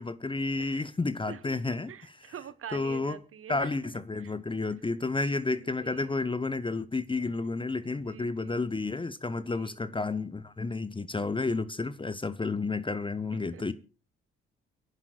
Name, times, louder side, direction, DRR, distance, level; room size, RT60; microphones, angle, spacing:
voice 1, 0.0-1.9 2.7-3.2 3.5-13.7, left 3 dB, 15° left, 0.9 m, -31 dB
voice 2, 1.3-3.8 4.2-4.3 4.7-4.8 5.2-6.1 7.8-8.7 9.3-9.8 13.3-13.7, right 8 dB, 45° right, 1.3 m, -46 dB
30.0 x 11.0 x 2.5 m
figure-of-eight pair, 40°, 32 cm